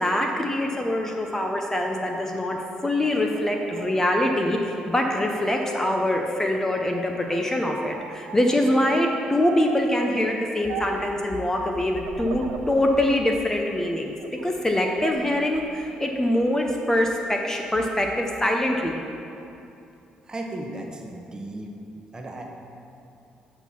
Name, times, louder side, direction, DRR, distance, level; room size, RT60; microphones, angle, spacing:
voice 1, 0.0-19.0, left 1 dB, 15° left, 2 dB, 0.7 m, -24 dB
sound 1, 2.9-6.1 6.5-7.4 7.8-8.4 9.4-9.9 10.7-11.2 12.0-13.0 13.5-14.5 14.9-15.6, right 6 dB, 85° right, 0.5 m, -40 dB
voice 2, 20.3-21.7 22.1-22.4, right 1 dB, 25° right, 1 dB, 1.0 m, -35 dB
7.9 x 4.5 x 5.7 m, 2.7 s
supercardioid pair, 70°, 3 cm